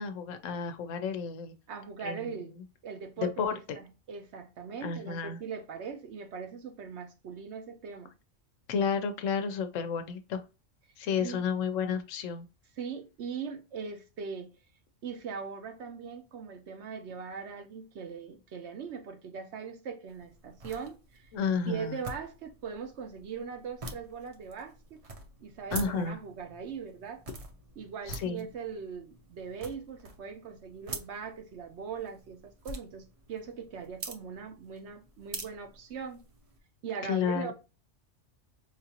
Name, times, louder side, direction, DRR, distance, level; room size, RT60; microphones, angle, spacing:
voice 1, 0.0-1.5 2.0-2.4 3.2-3.8 4.8-5.4 8.7-10.4 11.0-12.5 21.3-22.0 25.7-26.2 28.1-28.4 37.1-37.5, left 6 dB, 80° left, 1.0 m, -31 dB
voice 2, 1.7-2.5 2.8-8.1 11.2-11.4 12.8-14.5 15.0-21.3 21.7-25.0 25.4-27.2 27.8-36.2 36.8-37.5, right 6 dB, 65° right, 0.9 m, -40 dB
sound 1, 20.1-36.6, right 2 dB, 35° right, 0.6 m, -46 dB
4.8 x 2.5 x 2.8 m
omnidirectional pair, 1.3 m